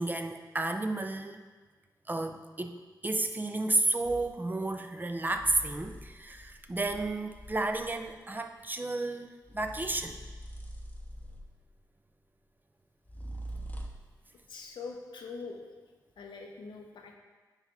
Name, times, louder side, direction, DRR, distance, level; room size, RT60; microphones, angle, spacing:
voice 1, 0.0-1.4 2.1-2.8 3.0-10.2, right 2 dB, 25° right, 7 dB, 0.6 m, -32 dB
sound 1, 4.0-4.3 5.2-8.2 9.4-11.7 13.1-14.2, right 1 dB, 20° left, 0.8 m, -44 dB
voice 2, 14.5-15.6 16.2-17.1, left 4 dB, 90° left, 2 dB, 0.9 m, -43 dB
9.1 x 4.8 x 4.1 m, 1.3 s
cardioid pair, 70°, 8 cm